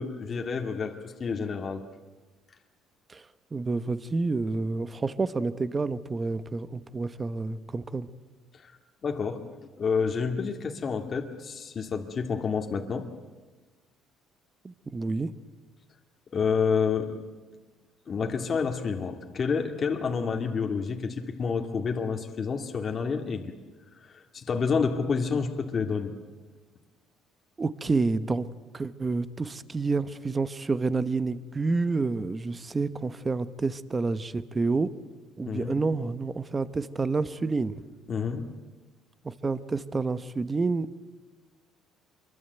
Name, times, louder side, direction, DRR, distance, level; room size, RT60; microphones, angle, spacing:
voice 1, 0.0-1.8 8.6-8.7 9.0-9.4 9.8-13.1 16.3-17.1 18.1-23.5 24.0-26.1 35.5-35.8 38.1-38.5, left 5 dB, 35° left, 4 dB, 2.1 m, -29 dB
voice 2, 3.1-8.1 14.6-15.3 27.6-28.5 28.7-34.9 35.4-37.8 39.2-41.0, right 3 dB, 20° right, 14 dB, 1.1 m, -29 dB
25.0 x 23.0 x 8.1 m, 1.3 s
cardioid pair, 120°, 0 cm